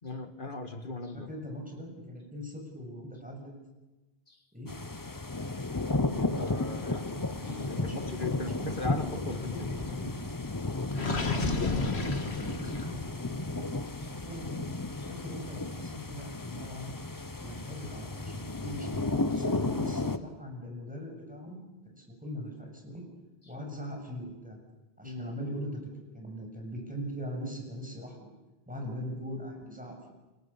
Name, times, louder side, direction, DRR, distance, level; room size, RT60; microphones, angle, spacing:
voice 1, 0.0-1.3 4.3-4.4 6.0-9.8 14.0-14.1 25.0-25.3, left 2 dB, 55° left, 8 dB, 2.0 m, -39 dB
voice 2, 1.1-3.5 4.5-4.7 7.6-9.1 9.5-10.2 12.3-13.7 14.2-14.7 15.1-16.9 17.4-21.7 21.9-23.0 23.5-24.6 25.0-28.3 28.7-30.1, equal, 5° right, 1 dB, 7.1 m, -41 dB
sound 1, 4.7-20.2, left 2 dB, 20° left, 0.8 m, -33 dB
Gurgling, 10.9-13.1, left 3 dB, 75° left, 2.4 m, -33 dB
29.5 x 24.0 x 7.2 m, 1.1 s
omnidirectional pair, 1.1 m